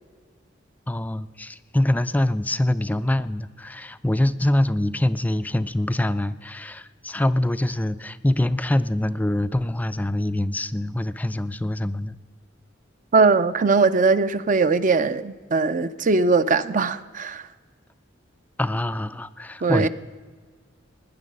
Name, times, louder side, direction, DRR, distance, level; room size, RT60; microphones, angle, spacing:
voice 1, 0.9-12.2 18.6-19.9, left 1 dB, 10° left, 13 dB, 0.4 m, -24 dB
voice 2, 13.1-17.5 19.6-19.9, right 4 dB, 40° right, 13 dB, 0.5 m, -20 dB
17.5 x 10.0 x 5.4 m, 1.5 s
head